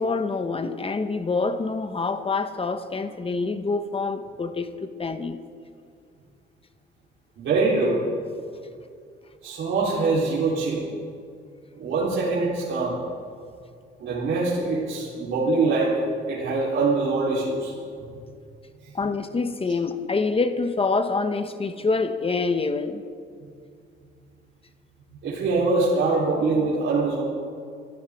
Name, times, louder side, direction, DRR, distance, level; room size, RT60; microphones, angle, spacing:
voice 1, 0.0-5.4 18.9-23.0, left 4 dB, 30° left, 9 dB, 1.0 m, -26 dB
voice 2, 7.4-8.0 9.4-10.8 11.8-13.0 14.0-16.0 16.3-17.7 18.0-18.1 25.2-27.2, right 3 dB, 70° right, -7 dB, 3.8 m, -23 dB
25.0 x 15.5 x 3.6 m, 2.3 s
cardioid pair, 90°, 20 cm